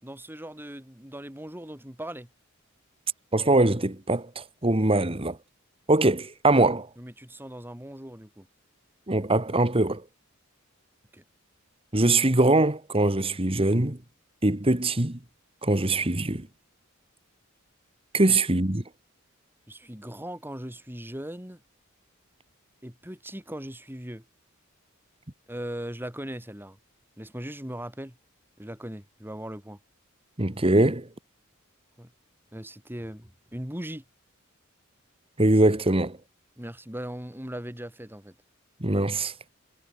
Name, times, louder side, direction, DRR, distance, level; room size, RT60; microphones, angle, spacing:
voice 1, 0.0-2.3 7.0-8.5 11.1-11.2 18.2-18.4 19.7-21.6 22.8-24.2 25.5-26.8 27.2-28.2 28.6-29.8 32.0-32.1 32.5-34.0 36.6-38.3, right 1 dB, 10° right, 4.0 m, -39 dB
voice 2, 3.3-5.4 5.9-6.9 9.1-10.0 11.9-14.0 14.4-15.2 15.6-16.5 18.1-18.8 30.4-31.1 35.4-36.2 38.8-39.3, right 2 dB, 25° right, 1.8 m, -22 dB
head